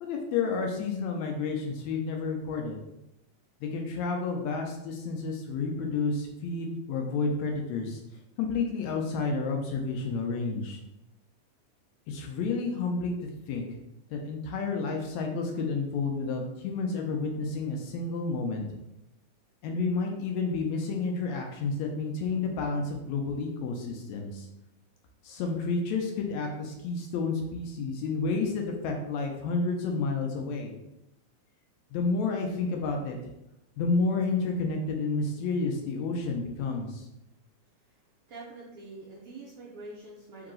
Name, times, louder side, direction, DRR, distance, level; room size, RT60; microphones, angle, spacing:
voice 1, 0.0-2.8 3.6-8.0 8.4-10.8 12.1-13.7 14.1-18.6 19.6-24.5 25.2-30.7 31.9-33.2 33.8-37.1, left 4 dB, 75° left, 2 dB, 1.8 m, -30 dB
voice 2, 37.8-40.5, right 2 dB, 75° right, -6 dB, 1.4 m, -46 dB
4.7 x 2.9 x 3.7 m, 0.89 s
omnidirectional pair, 3.4 m